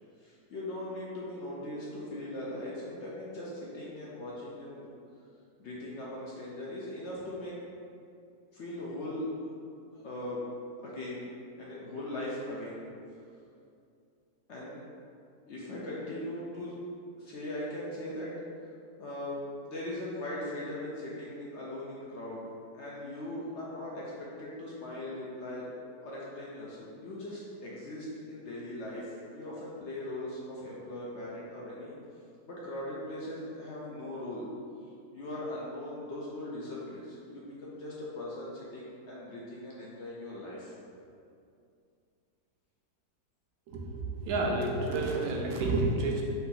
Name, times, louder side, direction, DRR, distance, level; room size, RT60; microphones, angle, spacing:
voice 1, 0.2-4.9 5.6-7.6 8.5-9.3 9.9-10.4 10.8-11.3 11.6-12.8 14.5-14.8 15.5-16.8 17.2-18.4 19.0-22.4 22.7-25.7 26.0-31.9 32.5-34.5 35.1-40.7, left 1 dB, 65° left, -5 dB, 0.7 m, -39 dB
voice 2, 43.7-46.2, right 2 dB, 70° right, -1 dB, 1.1 m, -30 dB
4.2 x 2.8 x 3.7 m, 2.5 s
omnidirectional pair, 1.7 m